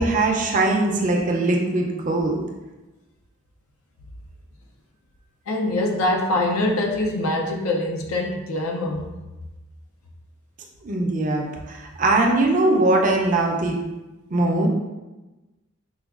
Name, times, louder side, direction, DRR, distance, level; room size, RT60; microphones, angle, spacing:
voice 1, 0.0-2.4 10.8-13.8 14.3-14.7, right 2 dB, 40° right, 1 dB, 0.4 m, -21 dB
voice 2, 5.5-9.1, left 1 dB, 90° left, 1 dB, 0.5 m, -24 dB
4.6 x 2.2 x 2.3 m, 1.1 s
head